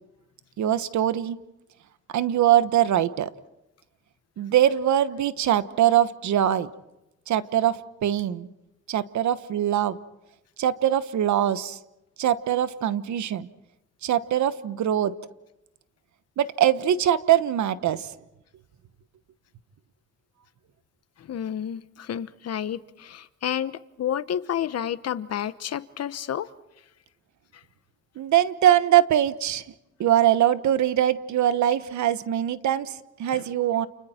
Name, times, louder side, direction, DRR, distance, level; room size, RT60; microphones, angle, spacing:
voice 1, 0.6-1.4 2.1-3.3 4.4-6.7 7.3-8.5 8.9-10.0 10.6-11.8 12.2-13.5 14.0-15.1 16.4-18.1 28.2-29.6 30.0-33.9, right 11 dB, 70° right, 13 dB, 1.2 m, -22 dB
voice 2, 21.2-26.5 27.5-27.6 33.3-33.5, left 9 dB, 55° left, 14 dB, 1.1 m, -30 dB
30.0 x 29.0 x 4.4 m, 0.92 s
cardioid pair, 90°, 30 cm